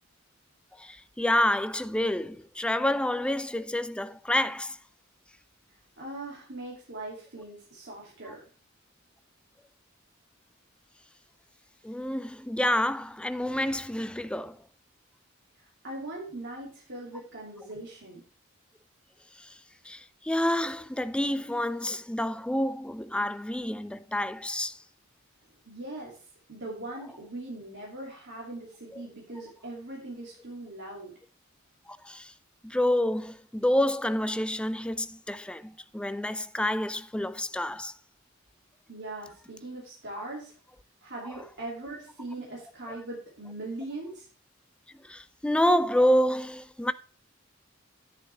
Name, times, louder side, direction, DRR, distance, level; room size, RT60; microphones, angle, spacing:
voice 1, 0.8-4.8 11.8-14.6 19.4-19.6 19.9-24.8 28.9-29.0 31.9-32.3 32.6-37.9 40.1-40.2 41.2-41.3 45.0-46.9, left 1 dB, 5° left, 0.4 m, -28 dB
voice 2, 6.0-8.4 15.6-18.2 25.6-26.2 26.5-31.1 38.9-40.5 41.0-44.3, right 2 dB, 60° right, 2.8 m, -40 dB
10.0 x 9.5 x 3.4 m
head